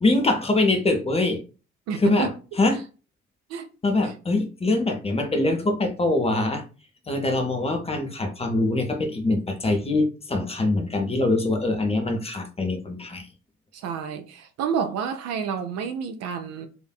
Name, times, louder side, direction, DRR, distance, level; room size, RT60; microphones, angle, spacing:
voice 1, 0.0-1.4 1.9-2.3 2.6-2.8 3.8-6.6 7.1-13.3, left 2 dB, 20° left, 0.7 m, -23 dB
voice 2, 1.9-2.3 3.5-3.7 13.7-16.7, right 7 dB, 50° right, 0.5 m, -29 dB
4.2 x 2.6 x 2.3 m
figure-of-eight pair, 45°, 33 cm